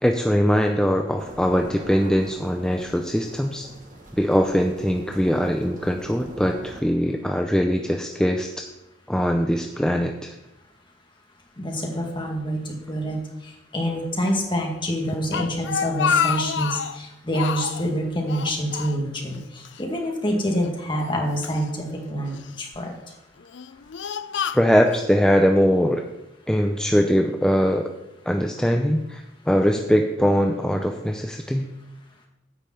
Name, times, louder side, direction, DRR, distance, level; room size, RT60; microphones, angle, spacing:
voice 1, 0.0-3.7 4.1-8.5 9.1-10.3 24.5-26.0 26.5-27.9 28.3-31.7, equal, 5° left, 3 dB, 0.5 m, -21 dB
sound 1, 1.2-6.8, right 1 dB, 50° right, 1.5 m, -42 dB
voice 2, 11.6-13.2 13.7-22.9, equal, 25° left, 1 dB, 2.0 m, -26 dB
Speech, 15.1-17.0 17.3-17.9 18.3-19.4 19.7-19.8 20.6-21.6 22.3-22.8 23.4-25.1, left 7 dB, 80° left, 0.5 m, -28 dB
9.9 x 5.3 x 7.6 m, 0.91 s
head